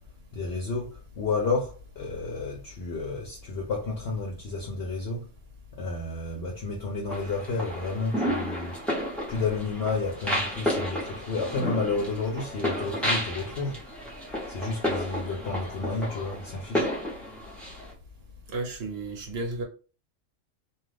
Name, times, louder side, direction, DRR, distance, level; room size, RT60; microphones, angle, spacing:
voice 1, 0.3-5.3 5.7-8.8 9.3-13.8 14.5-16.9, left 3 dB, 60° left, 0.8 m, -31 dB
sound 1, 7.1-17.9, equal, ahead, 0.6 m, -32 dB
voice 2, 18.5-19.6, right 2 dB, 55° right, 1.0 m, -33 dB
2.4 x 2.4 x 3.3 m
omnidirectional pair, 1.3 m